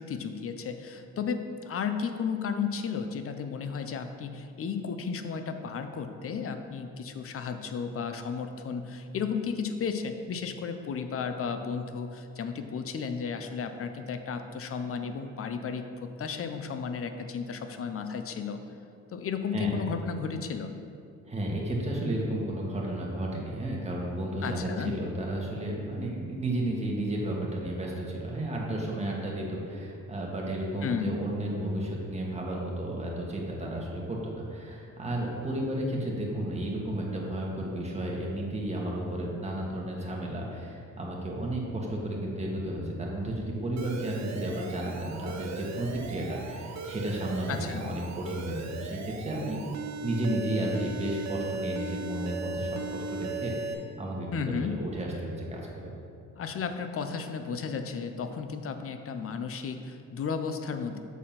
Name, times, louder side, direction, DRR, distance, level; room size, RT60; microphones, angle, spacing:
voice 1, 0.0-18.6 19.1-20.7 24.4-24.9 30.8-31.2 47.5-47.8 54.3-54.7 56.4-61.0, left 6 dB, 50° left, 7 dB, 0.7 m, -33 dB
voice 2, 21.2-49.6 50.0-55.9, right 1 dB, 20° right, -3 dB, 1.7 m, -33 dB
Alarm, 43.8-53.7, right 3 dB, 65° right, 0.7 m, -37 dB
7.1 x 4.3 x 5.9 m, 2.4 s
cardioid pair, 90°, 30 cm